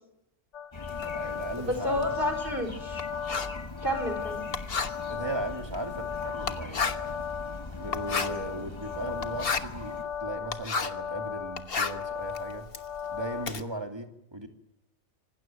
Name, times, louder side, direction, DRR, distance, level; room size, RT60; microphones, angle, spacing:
sound 1, 0.5-13.5, left 7 dB, 70° left, 2.0 m, -37 dB
sound 2, 0.7-10.0, left 2 dB, 25° left, 1.5 m, -42 dB
Writing, 0.9-11.1 11.4-13.6, left 5 dB, 50° left, 1.4 m, -34 dB
voice 1, 1.0-2.0 5.1-7.2 7.8-12.7 13.1-14.5, right 2 dB, 20° right, 4 dB, 2.6 m, -37 dB
voice 2, 1.6-3.0 3.8-4.4, left 1 dB, 45° right, 4 dB, 4.7 m, -30 dB
26.0 x 18.5 x 9.0 m, 0.85 s
omnidirectional pair, 1.3 m